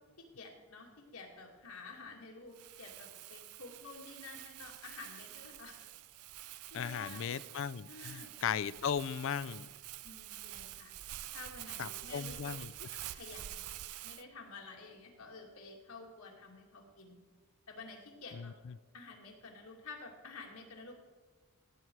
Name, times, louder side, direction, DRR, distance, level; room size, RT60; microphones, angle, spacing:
voice 1, 0.2-5.8 6.7-7.3 7.9-8.4 10.0-10.9 11.3-12.5 13.1-13.7 14.0-17.2 17.7-18.5 18.9-20.9, left 3 dB, 85° left, 0 dB, 2.3 m, -50 dB
Crumpling crinkling, 2.5-14.2, right 14 dB, 85° right, 0.5 m, -48 dB
voice 2, 6.7-9.7 11.8-12.9 18.3-18.7, left 7 dB, 60° left, 19 dB, 0.4 m, -37 dB
15.5 x 7.9 x 4.7 m, 1.3 s
head